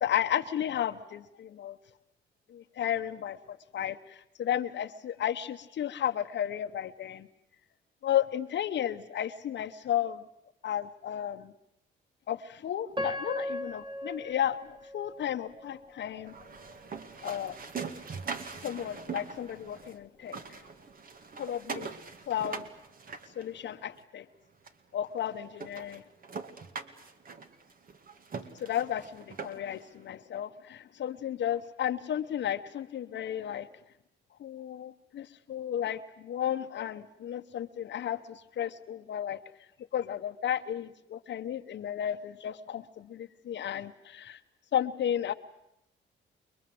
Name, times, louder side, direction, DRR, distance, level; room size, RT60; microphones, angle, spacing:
voice 1, 0.0-1.8 2.5-7.3 8.0-10.2 10.6-11.5 12.3-16.3 17.2-17.6 18.6-20.6 21.4-21.9 22.3-22.6 23.4-24.3 24.9-26.0 28.6-33.7 34.4-39.4 39.9-44.4 44.7-45.3, left 10 dB, 65° left, 7 dB, 1.1 m, -33 dB
Piano, 12.9-16.0 16.5-16.6 17.3-17.5, left 1 dB, 25° right, 1.9 m, -38 dB
sound 1, 16.2-20.0 20.2-24.0 24.7-24.8 25.2-25.3 25.6-29.8, right 5 dB, 45° right, 2.2 m, -42 dB
28.5 x 22.0 x 7.9 m, 0.82 s
cardioid pair, 90°, 20 cm